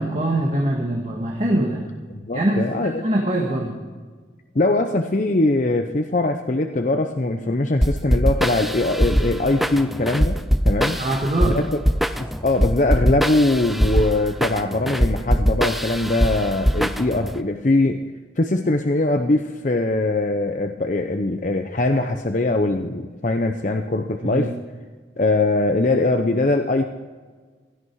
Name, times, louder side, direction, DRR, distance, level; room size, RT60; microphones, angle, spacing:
voice 1, 0.0-1.8 2.3-2.6 3.0-3.7 11.0-11.6 24.3-24.5, right 1 dB, 35° right, -1 dB, 1.8 m, -22 dB
voice 2, 2.1-3.0 4.5-10.4 10.6-11.0 11.4-11.8 12.2-18.0 18.4-24.5 25.2-26.8, left 2 dB, 45° left, 6 dB, 0.6 m, -21 dB
sound 1, 7.8-17.4, equal, ahead, 0.4 m, -22 dB
16.5 x 13.0 x 4.7 m, 1.5 s
head